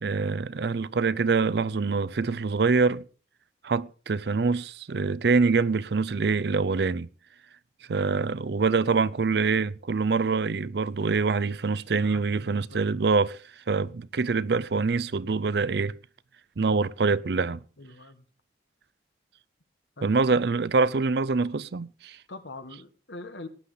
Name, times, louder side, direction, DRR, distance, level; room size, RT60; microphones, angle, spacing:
voice 1, 0.0-3.0 3.6-7.1 7.9-13.4 13.7-15.9 16.6-17.6 20.0-22.2, right 4 dB, 65° right, 0.5 m, -25 dB
voice 2, 7.9-8.4 11.9-13.0 17.0-17.2 17.8-18.2 20.0-20.4 22.3-23.5, left 2 dB, 75° left, 1.4 m, -44 dB
18.5 x 10.0 x 3.9 m
head